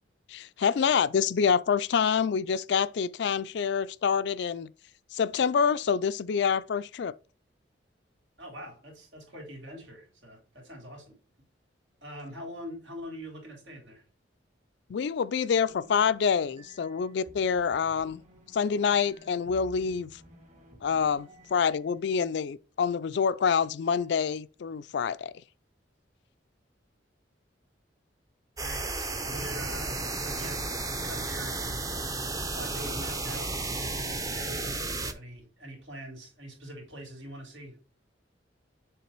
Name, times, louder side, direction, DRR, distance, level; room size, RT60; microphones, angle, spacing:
voice 1, 0.3-4.7 5.1-7.1 14.9-18.2 18.5-20.1 20.8-25.3, left 6 dB, 65° left, 0.4 m, -27 dB
voice 2, 8.4-11.2 12.0-14.0 28.6-30.7 31.0-31.9 32.5-37.8, equal, 80° right, 3.3 m, -43 dB
sound 1, 15.5-22.3, equal, 35° right, 2.2 m, -54 dB
sound 2, 28.6-35.1, right 2 dB, 20° right, 0.6 m, -33 dB
7.2 x 3.3 x 4.5 m
head